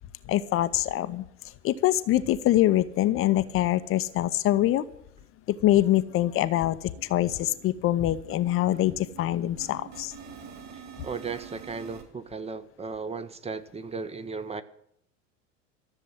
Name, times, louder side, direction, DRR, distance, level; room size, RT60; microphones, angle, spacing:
voice 1, 0.3-1.2 1.6-4.9 5.5-6.8 7.1-10.1, left 14 dB, 35° left, 13 dB, 0.7 m, -24 dB
sound 1, 4.8-4.9 5.2-5.3 5.6-5.8 6.1-12.0, right 6 dB, 40° right, 3.3 m, -47 dB
voice 2, 10.7-14.6, right 5 dB, 15° right, 11 dB, 0.7 m, -36 dB
13.5 x 7.3 x 9.8 m, 0.73 s
figure-of-eight pair, 75°, 39 cm